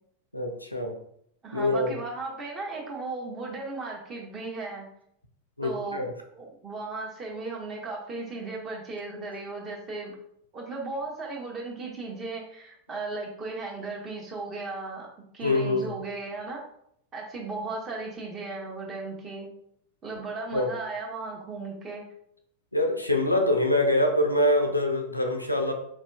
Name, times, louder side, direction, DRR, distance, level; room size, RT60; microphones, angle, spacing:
voice 1, 0.3-1.0 1.5-1.9 5.6-6.1 15.4-15.9 20.5-20.7 22.7-25.7, left 1 dB, 85° left, 3 dB, 0.4 m, -24 dB
voice 2, 1.4-4.9 5.6-6.0 6.4-10.1 10.5-15.1 15.3-16.6 17.1-19.5 20.0-22.0, right 3 dB, 25° right, -2 dB, 1.0 m, -36 dB
4.3 x 2.7 x 2.3 m, 0.70 s
figure-of-eight pair, 90°, 0 cm